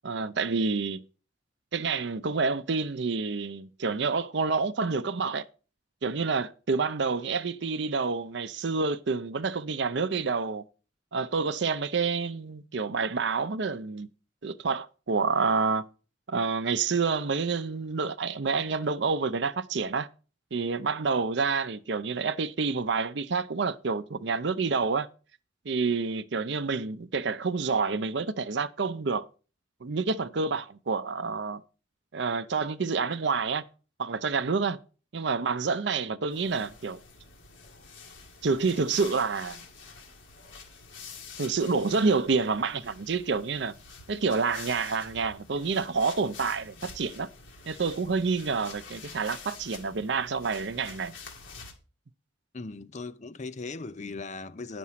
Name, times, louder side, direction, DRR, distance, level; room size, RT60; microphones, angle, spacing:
voice 1, 0.0-1.0 1.7-5.4 6.0-10.6 11.1-14.1 14.4-15.8 16.3-20.1 20.5-25.1 25.7-29.3 29.8-31.6 32.1-33.6 34.0-34.8 35.1-37.0 38.4-39.6 41.4-43.7 44.1-47.3 47.7-51.1, right 4 dB, 60° right, 0.6 m, -28 dB
sound 1, 36.3-51.7, left 5 dB, 75° left, 2.0 m, -47 dB
voice 2, 52.5-54.8, left 3 dB, 40° left, 0.6 m, -38 dB
9.5 x 6.0 x 5.7 m
head